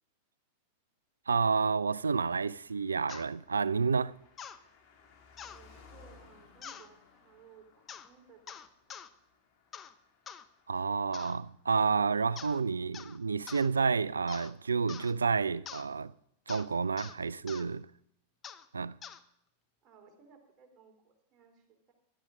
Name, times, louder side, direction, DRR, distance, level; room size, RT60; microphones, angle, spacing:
voice 1, 1.3-4.1 10.7-16.1 16.5-17.9 18.7-19.0, right 5 dB, 75° right, 0.4 m, -30 dB
Car passing by, 2.1-14.0 14.2-14.3, left 4 dB, 40° left, 2.9 m, -62 dB
sound 1, 3.1-3.3 4.4-4.6 5.4-5.6 6.6-6.9 7.9-8.1 8.5-9.1 9.7-9.9 10.3-10.4 11.1-11.4 12.4-12.6 12.9-13.2 13.5-13.7 14.3-14.5 14.9-15.1 15.7-15.9 16.5-16.7 17.0-17.2 17.5-17.7 18.4-18.6 19.0-19.2, left 8 dB, 25° left, 0.8 m, -46 dB
voice 2, 5.5-9.0 19.8-21.9, right 6 dB, 30° right, 3.1 m, -60 dB
16.0 x 12.0 x 3.6 m
figure-of-eight pair, 90°, 0 cm